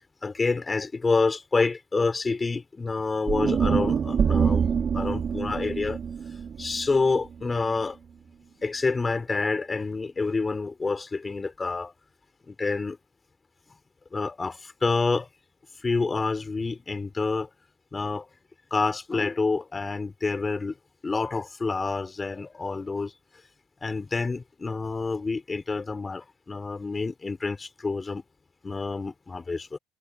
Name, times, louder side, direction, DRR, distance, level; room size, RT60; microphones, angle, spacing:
voice 1, 0.2-4.7 4.9-6.0 6.6-8.0 8.6-11.9 12.5-13.0 14.1-15.3 15.8-17.5 17.9-18.3 18.7-20.8 21.0-23.1 23.8-28.2 28.6-29.8, left 4 dB, 25° left, 5.4 m, -28 dB
sound 1, 3.3-7.5, right 7 dB, 40° right, 3.6 m, -26 dB
supercardioid pair, 85°, 0 cm